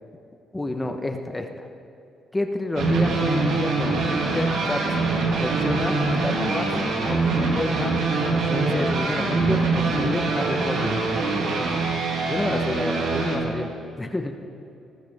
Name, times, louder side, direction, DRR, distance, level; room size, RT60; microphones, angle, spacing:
voice 1, 0.5-1.7 2.3-5.1 5.4-6.7 7.1-11.0 12.3-13.7 14.0-14.3, left 2 dB, 15° left, 5 dB, 1.1 m, -29 dB
sound 1, 2.8-13.4, right 3 dB, 80° right, 2.8 m, -24 dB
19.5 x 14.0 x 3.7 m, 2.8 s
cardioid pair, 90°, 0 cm